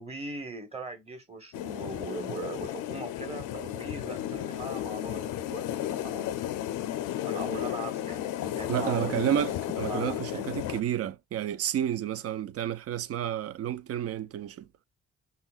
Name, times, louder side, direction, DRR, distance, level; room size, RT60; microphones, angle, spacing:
voice 1, 0.0-6.3 7.2-9.6 9.9-10.4, right 3 dB, 20° right, 1.1 m, -40 dB
sound 1, 1.5-10.8, left 12 dB, 85° left, 0.6 m, -33 dB
voice 2, 8.7-14.7, right 10 dB, 55° right, 0.4 m, -30 dB
5.7 x 2.1 x 2.4 m
cardioid pair, 90°, 30 cm